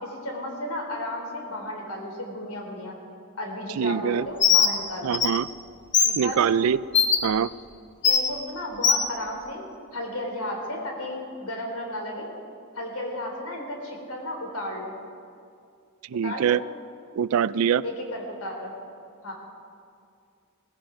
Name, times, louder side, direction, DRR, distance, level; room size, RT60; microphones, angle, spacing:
voice 1, 0.0-3.0 3.4-5.2 6.0-6.5 8.0-12.3 12.8-14.9 16.2-16.6 17.8-18.7 19.2-19.3, left 1 dB, 75° left, 1 dB, 3.7 m, -34 dB
voice 2, 3.8-4.3 5.0-5.5 6.2-6.8 7.2-7.5 16.1-16.6 17.2-17.8, right 8 dB, 65° right, 18 dB, 0.4 m, -23 dB
Bird, 4.4-4.7 5.1-5.3 5.9-6.1 6.9-7.2 8.0-8.2 8.8-9.0, left 7 dB, 50° left, 1.3 m, -18 dB
18.5 x 15.5 x 5.1 m, 2.4 s
head